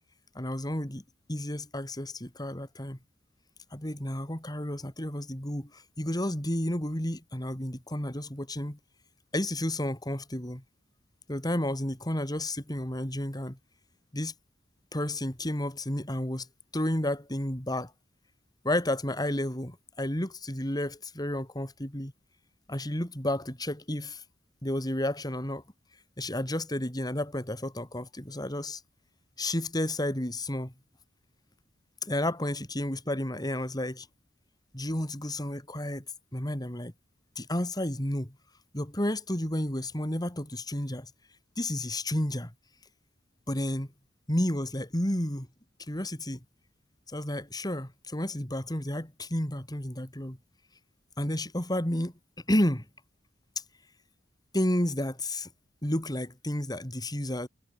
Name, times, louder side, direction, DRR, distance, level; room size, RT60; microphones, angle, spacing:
voice 1, 0.4-1.0 1.3-3.0 3.7-8.8 9.3-10.6 11.3-13.6 14.1-14.3 14.9-16.5 16.7-17.9 18.6-22.1 22.7-24.2 24.6-25.6 26.2-28.8 29.4-30.7 32.0-34.1 34.7-36.0 36.3-36.9 37.4-38.3 38.7-41.1 41.6-42.5 43.5-43.9 44.3-45.5 45.9-46.4 47.1-50.4 51.2-52.1 52.5-52.9 54.5-55.5 55.8-57.5, left 1 dB, 20° left, 3.7 m, -31 dB
head